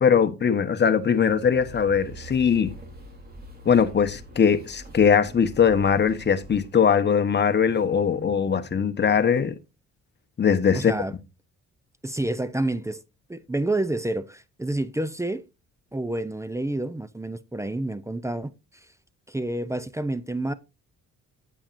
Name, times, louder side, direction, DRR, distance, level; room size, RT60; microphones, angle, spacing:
voice 1, 0.0-2.7 3.6-9.5 10.4-10.9, left 7 dB, 35° left, 1.0 m, -21 dB
sound 1, 0.9-6.7, right 1 dB, 30° right, 3.1 m, -44 dB
voice 2, 10.7-11.1 12.0-13.0 13.3-15.5 15.9-18.9 19.3-20.5, right 1 dB, 10° right, 0.5 m, -29 dB
8.7 x 8.6 x 2.6 m
cardioid pair, 90°, 30 cm